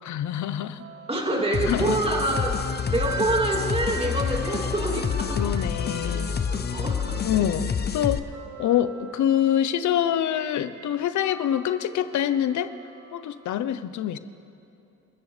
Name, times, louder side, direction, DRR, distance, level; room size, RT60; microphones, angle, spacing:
voice 1, 0.0-0.8 1.7-2.0 5.4-6.3 7.2-8.2 8.6-12.7 13.1-14.2, left 10 dB, 70° left, 12 dB, 0.8 m, -25 dB
sound 1, 0.8-13.5, right 4 dB, 65° right, 1.7 m, -41 dB
voice 2, 1.1-5.5 6.5-7.3, right 1 dB, 20° right, -1 dB, 2.9 m, -27 dB
sound 2, 1.5-8.2, left 6 dB, 35° left, 0.7 m, -28 dB
30.0 x 13.5 x 3.4 m, 2.8 s
cardioid pair, 90°, 30 cm